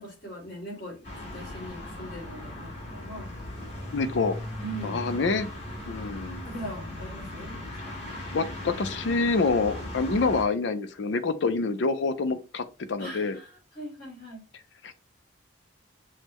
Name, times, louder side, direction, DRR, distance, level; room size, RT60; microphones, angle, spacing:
voice 1, 0.0-3.4 4.6-5.0 6.0-7.9 13.0-14.4, right 1 dB, 50° left, 2.1 m, -41 dB
sound 1, 1.0-10.4, left 1 dB, 30° left, 1.6 m, -38 dB
voice 2, 3.9-4.4 4.8-5.5 5.9-6.5 8.3-13.4 14.8-14.9, left 3 dB, 70° left, 0.5 m, -27 dB
6.3 x 2.1 x 2.9 m
head